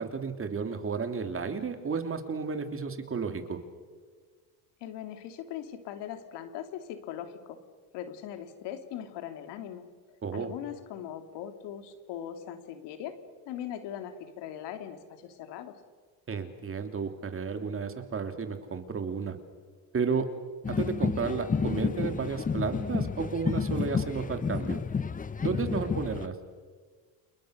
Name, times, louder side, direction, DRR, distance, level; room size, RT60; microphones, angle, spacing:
voice 1, 0.0-3.6 10.2-10.5 16.3-19.4 19.9-20.3 20.7-24.8 25.4-26.3, right 5 dB, 30° right, 7 dB, 3.1 m, -32 dB
voice 2, 4.8-7.6 7.9-9.9 10.3-13.2 13.5-15.8, left 10 dB, 85° left, 8 dB, 2.7 m, -40 dB
sound 1, 20.6-26.3, left 5 dB, 20° left, 0.8 m, -30 dB
29.5 x 29.0 x 6.5 m, 1.5 s
cardioid pair, 115°, 40 cm